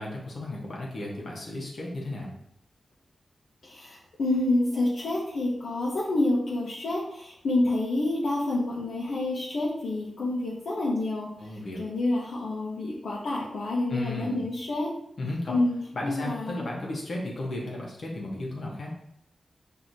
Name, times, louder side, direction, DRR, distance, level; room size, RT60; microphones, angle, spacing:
voice 1, 0.0-2.3 11.4-11.8 13.9-14.4 15.2-15.6 15.9-18.9, left 1 dB, 55° left, -3 dB, 0.9 m, -34 dB
voice 2, 3.6-14.9 15.5-15.8 16.0-16.7, left 2 dB, 90° left, -6 dB, 0.7 m, -28 dB
5.9 x 2.7 x 2.6 m, 0.75 s
wide cardioid pair, 155°, 0 cm